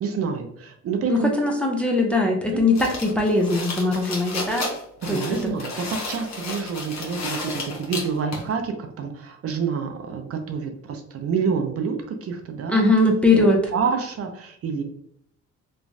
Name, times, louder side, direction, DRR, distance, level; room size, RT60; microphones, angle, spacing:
voice 1, 0.0-1.3 2.5-2.7 5.0-14.8, right 6 dB, 50° right, 5 dB, 0.5 m, -28 dB
voice 2, 1.1-4.7 5.1-5.4 12.7-13.6, left 2 dB, 5° left, 1 dB, 0.5 m, -20 dB
sound 1, 2.8-8.5, left 3 dB, 60° left, 0.9 m, -32 dB
3.0 x 2.2 x 2.6 m, 0.70 s
cardioid pair, 90°, 30 cm